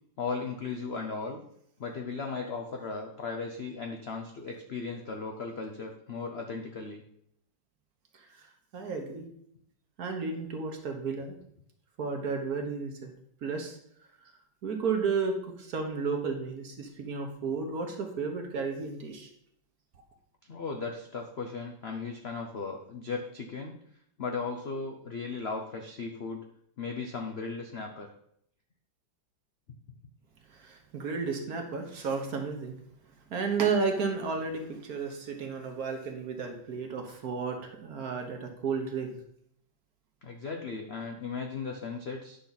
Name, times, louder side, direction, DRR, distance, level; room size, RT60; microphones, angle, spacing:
voice 1, 0.2-1.4 1.8-7.0 20.5-23.8 24.2-26.5 26.8-28.1 40.2-42.4, left 4 dB, 65° left, 3 dB, 0.6 m, -36 dB
voice 2, 8.7-9.3 10.0-11.4 12.0-13.1 13.4-13.8 14.6-19.3 30.5-32.8 33.3-39.1, right 5 dB, 55° right, 3 dB, 1.4 m, -32 dB
9.7 x 5.8 x 4.0 m, 0.70 s
omnidirectional pair, 2.1 m